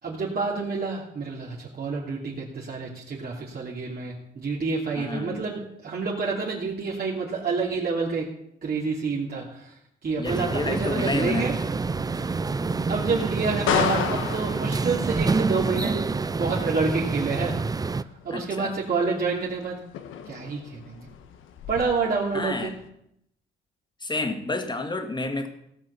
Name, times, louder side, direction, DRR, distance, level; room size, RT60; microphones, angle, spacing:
voice 1, 0.0-8.3 8.6-9.7 10.0-11.6 12.1-12.6 12.9-17.6 17.9-19.8 20.3-21.1 21.7-22.8, right 4 dB, 50° right, -4 dB, 2.9 m, -28 dB
voice 2, 5.0-5.4 10.2-11.5 18.3-18.7 22.3-22.7 24.0-25.5, left 2 dB, 20° left, 6 dB, 2.1 m, -29 dB
sound 1, 10.1-22.9, left 8 dB, 85° left, 1.4 m, -35 dB
sound 2, 10.2-18.0, right 4 dB, 20° right, 0.5 m, -27 dB
17.0 x 6.2 x 7.1 m, 0.77 s
cardioid pair, 90°, 20 cm